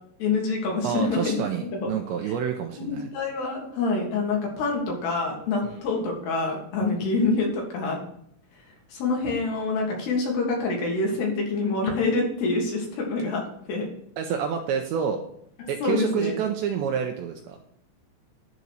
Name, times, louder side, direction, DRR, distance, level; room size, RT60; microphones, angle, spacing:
voice 1, 0.2-1.4 1.8-1.9 2.7-8.0 8.9-13.4 13.7-13.9 15.8-16.4, left 3 dB, 65° left, 0 dB, 3.6 m, -26 dB
voice 2, 0.8-3.1 5.6-5.8 6.8-6.9 14.2-15.2 15.7-17.6, right 7 dB, 85° right, 4 dB, 2.6 m, -28 dB
11.0 x 4.1 x 6.3 m, 0.70 s
omnidirectional pair, 5.7 m